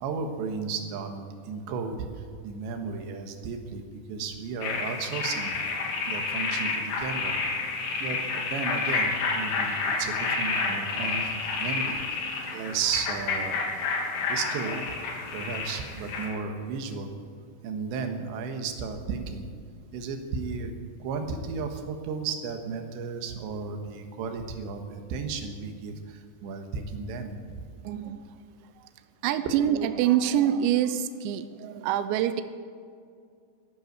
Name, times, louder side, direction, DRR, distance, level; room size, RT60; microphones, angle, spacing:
voice 1, 0.0-2.0 2.4-3.8 4.1-5.5 6.1-7.4 8.0-11.9 12.5-13.6 14.3-14.8 15.3-17.1 17.6-19.5 19.9-20.7 21.0-27.6, right 5 dB, 70° right, 5 dB, 3.2 m, -34 dB
sound 1, 4.6-16.3, left 4 dB, 75° left, 5.2 m, -29 dB
voice 2, 27.8-28.9 29.2-32.4, right 10 dB, 90° right, 11 dB, 2.5 m, -26 dB
15.0 x 11.5 x 8.1 m, 2.2 s
omnidirectional pair, 6.0 m